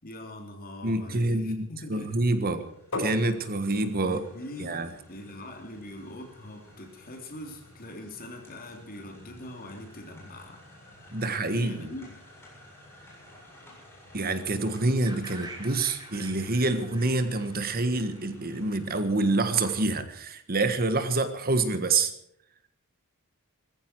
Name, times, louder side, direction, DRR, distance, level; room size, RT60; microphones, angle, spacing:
voice 1, 0.0-2.3 2.5-2.8 4.0-4.8 5.1-10.6 11.2-12.2, left 1 dB, 40° left, 3 dB, 3.6 m, -42 dB
voice 2, 0.8-2.6 3.0-4.2 4.6-4.9 11.1-11.9 14.1-22.1, right 2 dB, 45° right, 10 dB, 1.5 m, -27 dB
sound 1, 1.8-19.8, left 1 dB, 10° left, 7.3 m, -54 dB
sound 2, 2.9-8.6, left 2 dB, 70° left, 6.0 m, -42 dB
sound 3, 15.1-18.9, right 2 dB, 20° right, 4.1 m, -46 dB
20.0 x 15.0 x 4.7 m, 0.72 s
head